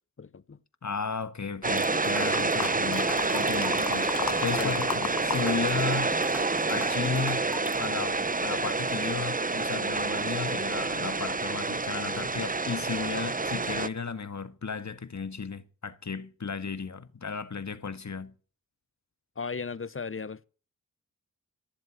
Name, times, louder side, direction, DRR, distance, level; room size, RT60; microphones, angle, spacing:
voice 1, 0.2-0.6 4.5-4.9 19.4-20.5, left 5 dB, 35° left, 0.9 m, -36 dB
voice 2, 0.8-6.2 6.7-7.4 7.8-18.3, left 5 dB, 50° left, 1.7 m, -34 dB
sound 1, 1.6-7.8, equal, 5° right, 3.3 m, -40 dB
sound 2, 1.6-13.9, right 3 dB, 25° right, 0.9 m, -28 dB
sound 3, 2.2-5.4 5.7-7.2 7.7-7.8, left 7 dB, 70° left, 1.2 m, -35 dB
15.0 x 7.5 x 9.9 m
cardioid pair, 45°, 35 cm